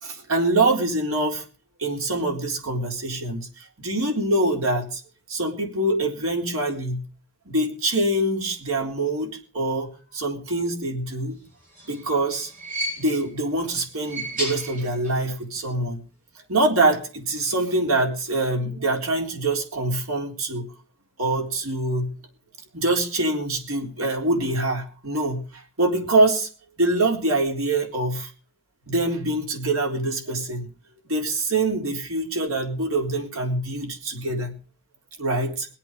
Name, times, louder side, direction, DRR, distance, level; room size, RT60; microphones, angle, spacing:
voice 1, 0.0-1.4 1.8-3.5 3.8-5.0 5.3-7.0 7.5-11.4 11.9-12.5 13.0-16.0 16.5-20.7 21.2-22.1 22.7-26.5 26.8-28.3 28.9-30.7 31.1-34.6 35.2-35.7, right 2 dB, 85° right, 2 dB, 3.9 m, -24 dB
sound 1, 11.5-13.4 13.9-15.3 15.6-15.7 16.8-16.9, right 1 dB, 40° right, 7.8 m, -34 dB
22.0 x 8.5 x 5.3 m, 0.39 s
head